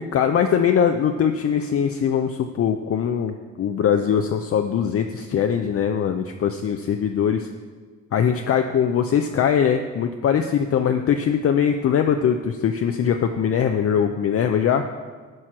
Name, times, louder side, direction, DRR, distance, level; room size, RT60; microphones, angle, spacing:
voice 1, 0.0-7.5 8.1-14.9, left 8 dB, 50° left, 6 dB, 0.5 m, -21 dB
11.0 x 4.4 x 6.1 m, 1.5 s
cardioid pair, 90°, 30 cm